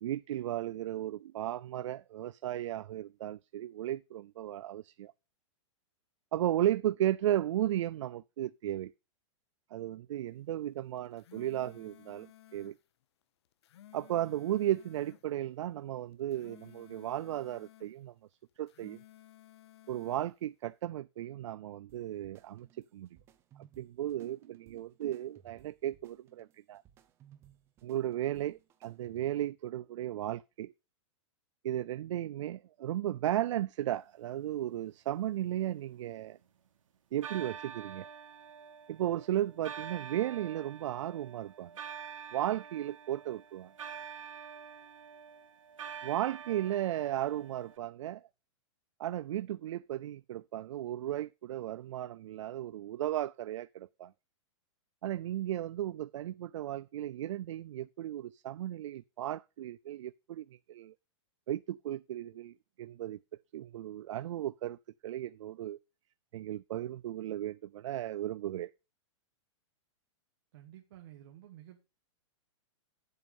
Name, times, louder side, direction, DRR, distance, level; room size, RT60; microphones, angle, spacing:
voice 1, 0.0-5.1 6.3-8.9 9.7-12.8 13.9-18.1 18.6-19.0 19.9-23.1 23.8-26.8 27.8-30.7 31.6-36.4 37.1-38.1 38.9-41.7 42.3-43.7 46.0-48.2 49.0-54.1 55.0-60.9 61.5-63.2 63.5-64.8 65.0-65.8 66.3-68.7, right 12 dB, 70° right, 0.4 m, -35 dB
sound 1, 11.0-12.8 13.5-15.3 16.1-17.9 18.6-20.3, left 13 dB, 55° left, 0.7 m, -57 dB
sound 2, 21.9-29.5, right 10 dB, 15° right, 0.6 m, -63 dB
sound 3, 35.2-36.7 37.2-47.8, right 7 dB, 90° right, 2.3 m, -47 dB
voice 2, 70.5-71.8, right 12 dB, 50° right, 1.4 m, -52 dB
7.9 x 7.6 x 5.3 m
supercardioid pair, 170°, 16 cm